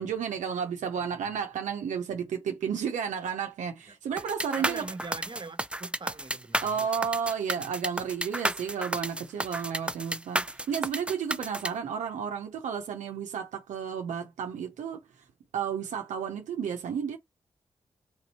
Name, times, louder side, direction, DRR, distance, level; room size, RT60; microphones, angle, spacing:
voice 1, 0.0-4.8 6.6-15.0 15.5-17.2, right 7 dB, 85° right, 0.6 m, -32 dB
sound 1, 4.2-11.7, right 1 dB, 10° right, 0.6 m, -31 dB
voice 2, 4.5-7.1, right 3 dB, 40° right, 1.0 m, -43 dB
3.6 x 2.8 x 4.1 m
supercardioid pair, 40°, 12 cm